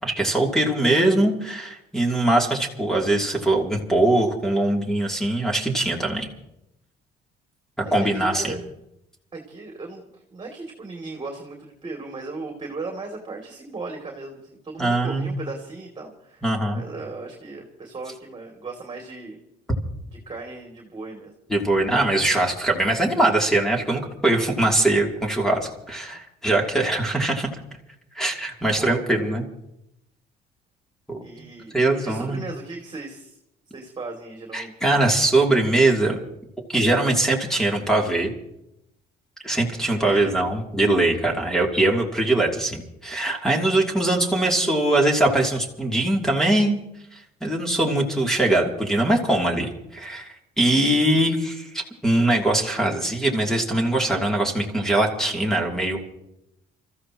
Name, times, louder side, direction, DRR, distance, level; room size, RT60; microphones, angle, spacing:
voice 1, 0.0-6.3 7.9-8.6 14.8-15.4 16.4-16.8 21.5-27.5 28.1-29.5 31.1-31.2 31.7-32.4 34.5-36.2 36.7-38.3 39.4-46.8 47.1-56.0, right 2 dB, 5° left, 0 dB, 2.9 m, -22 dB
voice 2, 7.8-8.6 9.3-16.4 16.7-19.4 20.1-21.3 28.3-29.3 31.2-33.4 33.7-34.7 39.8-40.3, right 3 dB, 25° right, 1 dB, 2.8 m, -37 dB
29.0 x 14.5 x 3.0 m, 0.82 s
cardioid pair, 110°, 17 cm